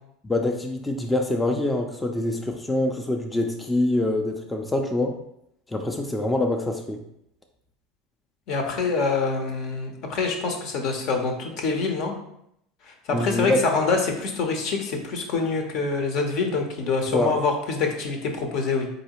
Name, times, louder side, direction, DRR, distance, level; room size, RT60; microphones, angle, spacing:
voice 1, 0.2-5.1 5.7-7.0 13.1-13.6 17.1-17.3, left 1 dB, 10° left, 3 dB, 0.4 m, -25 dB
voice 2, 8.5-12.1 12.8-18.9, left 4 dB, 60° left, 3 dB, 0.7 m, -25 dB
3.9 x 2.7 x 2.9 m, 0.77 s
hypercardioid pair, 90°, 0 cm